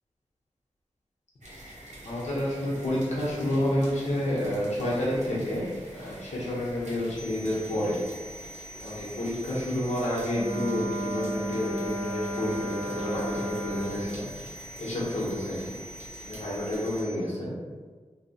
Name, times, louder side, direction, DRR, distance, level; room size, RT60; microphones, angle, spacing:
sound 1, 1.4-17.0, right 1 dB, 80° right, 0.7 m, -46 dB
voice 1, 2.0-5.6 5.9-8.0 8.8-14.3 14.8-15.8 16.2-17.5, left 1 dB, 70° left, -6 dB, 0.8 m, -29 dB
sound 2, 7.2-17.2, equal, 35° left, 0.5 m, -46 dB
Wind instrument woodwind instrument, 10.3-14.2, equal, 20° right, 0.5 m, -33 dB
2.9 x 2.0 x 2.8 m, 1.5 s
wide cardioid pair, 85°, 12 cm